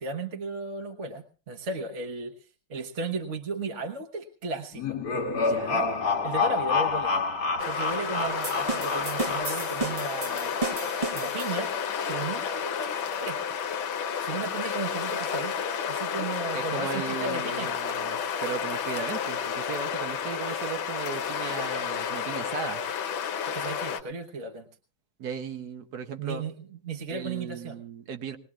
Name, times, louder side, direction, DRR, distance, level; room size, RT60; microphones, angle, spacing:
voice 1, 0.0-5.0 6.2-7.1 7.6-10.5 11.1-11.7 12.1-13.6 14.2-17.7 23.5-24.7 26.2-27.8, right 4 dB, 40° right, 2 dB, 1.3 m, -35 dB
sound 1, 4.7-9.9, left 4 dB, 50° left, 1.7 m, -28 dB
voice 2, 5.3-5.9 16.5-22.8 25.2-26.4 27.1-28.4, right 6 dB, 60° right, 8 dB, 1.3 m, -37 dB
sound 2, 7.6-24.0, left 7 dB, 80° left, 1.7 m, -31 dB
sound 3, 8.4-11.9, right 3 dB, 25° right, 0.8 m, -34 dB
21.0 x 20.0 x 2.4 m, 0.36 s
omnidirectional pair, 2.2 m